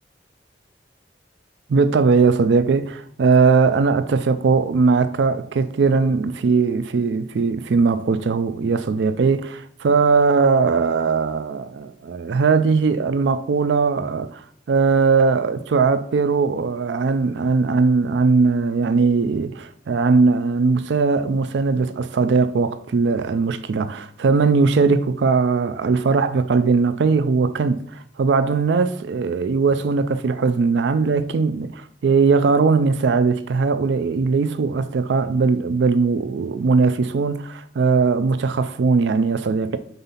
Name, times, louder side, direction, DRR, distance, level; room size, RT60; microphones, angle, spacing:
voice 1, 1.7-14.4 14.7-39.8, right 4 dB, 75° right, 0.4 m, -19 dB
5.4 x 4.0 x 5.6 m
head